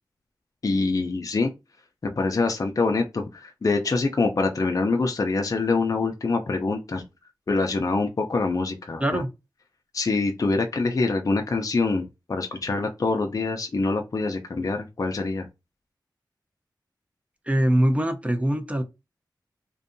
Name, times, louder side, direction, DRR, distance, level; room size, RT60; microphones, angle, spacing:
voice 1, 0.6-1.5 2.0-7.0 7.5-9.2 9.9-15.5, left 3 dB, 45° left, 0.4 m, -25 dB
voice 2, 17.5-18.8, right 1 dB, 15° right, 0.5 m, -22 dB
2.6 x 2.2 x 2.5 m
cardioid pair, 45°, 8 cm